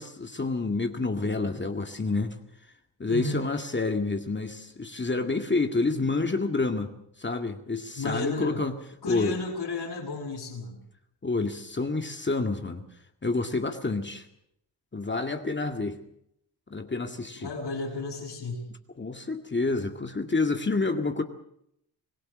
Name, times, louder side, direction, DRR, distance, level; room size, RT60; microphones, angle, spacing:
voice 1, 0.0-2.4 3.0-6.9 7.2-8.7 9.1-9.4 11.2-12.8 13.2-14.3 14.9-16.0 16.7-17.5 19.0-21.2, left 3 dB, 25° left, 5 dB, 2.1 m, -28 dB
voice 2, 3.1-3.4 8.0-8.6 9.0-10.8 17.4-18.7, left 3 dB, 60° left, -5 dB, 8.0 m, -33 dB
25.5 x 17.5 x 6.4 m, 0.75 s
cardioid pair, 85°, 44 cm